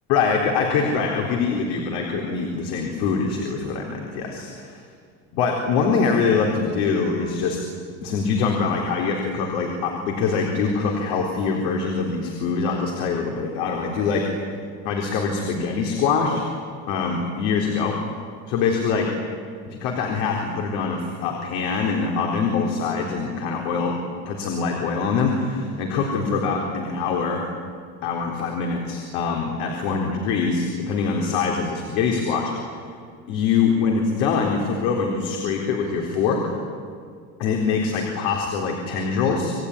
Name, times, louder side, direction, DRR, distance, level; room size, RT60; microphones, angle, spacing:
voice 1, 0.1-4.8 5.3-7.6 8.0-14.4 14.8-16.4 16.9-18.0 18.5-19.1 19.6-23.9 24.3-27.4 28.0-32.5 33.3-36.4 37.4-39.5, left 5 dB, 75° left, 0 dB, 4.1 m, -24 dB
27.5 x 20.0 x 9.9 m, 2.1 s
cardioid pair, 180°, 32 cm